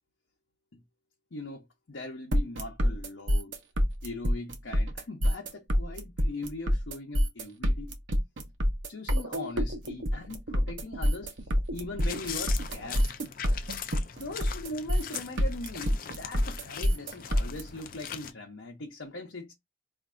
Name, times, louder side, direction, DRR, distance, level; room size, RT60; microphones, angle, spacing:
voice 1, 1.3-3.6 4.0-7.9 8.9-13.1 14.2-19.5, left 2 dB, 75° left, 0.7 m, -40 dB
sound 1, 2.3-17.6, equal, 70° right, 0.8 m, -27 dB
sound 2, 12.0-18.3, left 8 dB, 45° left, 0.4 m, -41 dB
4.4 x 2.6 x 2.5 m
head